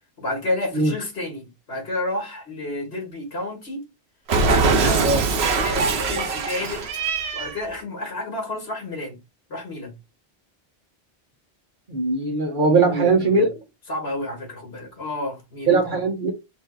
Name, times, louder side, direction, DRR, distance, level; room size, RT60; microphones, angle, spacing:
voice 1, 0.2-3.9 4.4-5.1 5.4-6.9 7.3-9.2 9.5-10.0 12.7-13.5 13.9-16.0, left 1 dB, 85° left, 2.0 m, -30 dB
Cat, 4.3-7.6, right 4 dB, 85° right, 1.0 m, -22 dB
voice 2, 11.9-13.5 15.7-16.3, right 3 dB, 55° right, 1.2 m, -20 dB
3.8 x 2.7 x 3.8 m
omnidirectional pair, 1.0 m